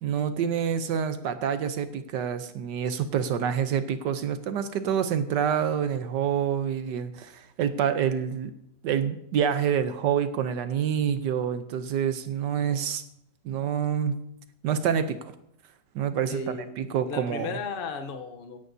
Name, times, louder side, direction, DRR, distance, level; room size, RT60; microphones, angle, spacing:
voice 1, 0.0-8.5 8.8-13.0 13.4-14.2 14.6-15.2 15.9-17.5, right 8 dB, 70° right, 10 dB, 1.4 m, -27 dB
voice 2, 16.3-18.6, left 4 dB, 45° left, 6 dB, 0.7 m, -35 dB
16.5 x 10.5 x 2.7 m, 0.76 s
omnidirectional pair, 2.0 m